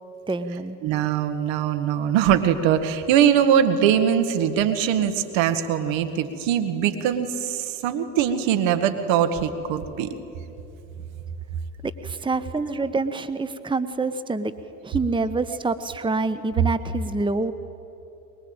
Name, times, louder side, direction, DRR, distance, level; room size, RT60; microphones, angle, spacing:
voice 1, 0.3-0.8 11.8-14.5 14.8-17.5, right 3 dB, 10° right, 12 dB, 1.1 m, -26 dB
voice 2, 0.8-10.1, right 9 dB, 65° right, 9 dB, 1.8 m, -22 dB
23.0 x 21.5 x 9.0 m, 2.9 s
hypercardioid pair, 65°, 49 cm